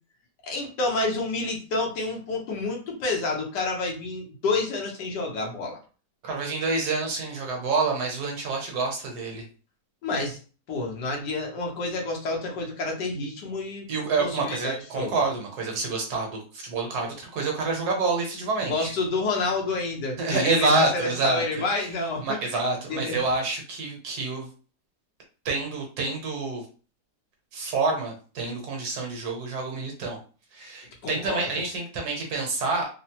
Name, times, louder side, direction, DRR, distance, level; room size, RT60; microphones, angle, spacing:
voice 1, 0.4-5.8 10.0-10.4 10.7-13.9 14.2-15.1 18.7-22.5 22.9-23.3 31.0-31.5, left 3 dB, 80° left, 0 dB, 1.5 m, -29 dB
voice 2, 6.2-9.4 13.9-18.9 20.2-21.4 22.2-24.5 25.4-26.7 27.5-30.2 30.5-32.9, right 3 dB, 70° right, 0 dB, 1.4 m, -27 dB
3.6 x 2.0 x 2.8 m, 0.37 s
omnidirectional pair, 1.8 m